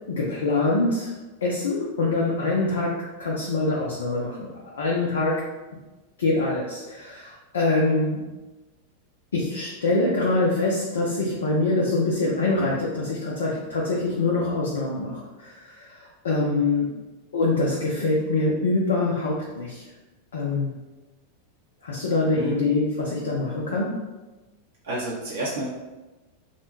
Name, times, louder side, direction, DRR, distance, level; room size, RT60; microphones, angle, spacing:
voice 1, 0.1-1.1 1.4-4.5 4.7-5.4 6.2-8.2 9.3-17.0 17.3-19.8 20.3-20.8 21.8-24.0, left 2 dB, 65° left, -3 dB, 0.4 m, -24 dB
voice 2, 24.8-25.7, right 1 dB, 60° right, -6 dB, 0.7 m, -30 dB
2.7 x 2.1 x 2.8 m, 1.1 s
figure-of-eight pair, 90°, 0 cm